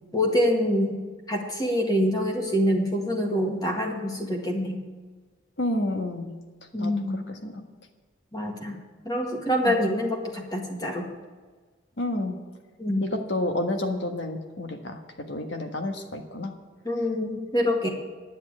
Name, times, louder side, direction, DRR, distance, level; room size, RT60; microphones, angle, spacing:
voice 1, 0.1-1.0 1.3-4.8 6.7-7.2 8.3-8.8 9.1-11.1 12.8-13.0 16.8-17.9, equal, 20° left, 1 dB, 1.8 m, -25 dB
voice 2, 5.6-6.3 6.8-6.9 7.3-7.6 9.6-9.7 12.0-12.4 13.0-15.0 15.3-16.5, left 1 dB, 65° left, 5 dB, 1.5 m, -29 dB
11.0 x 7.3 x 8.6 m, 1.4 s
head